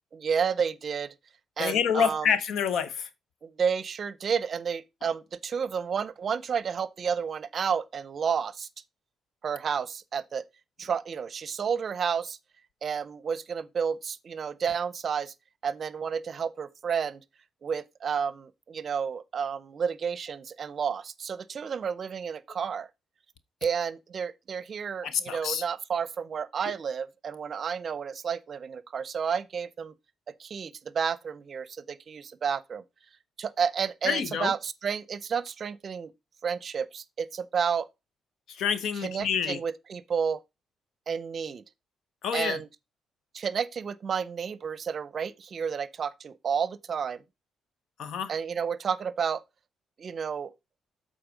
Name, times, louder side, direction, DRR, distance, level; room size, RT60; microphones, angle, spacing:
voice 1, 0.1-1.1 1.6-2.3 3.4-8.7 9.4-10.4 10.8-12.4 12.8-15.3 15.6-17.2 17.6-22.9 23.6-29.9 30.4-32.8 33.4-36.1 36.4-37.9 38.9-40.4 41.1-41.6 42.3-42.7 43.3-47.2 48.3-49.4 50.0-50.5, right 6 dB, 50° right, 0.6 m, -31 dB
voice 2, 1.6-3.1 25.0-25.6 34.1-34.5 38.5-39.6 42.2-42.6 48.0-48.3, left 7 dB, 75° left, 0.9 m, -27 dB
7.9 x 4.0 x 5.1 m
cardioid pair, 90°, 0 cm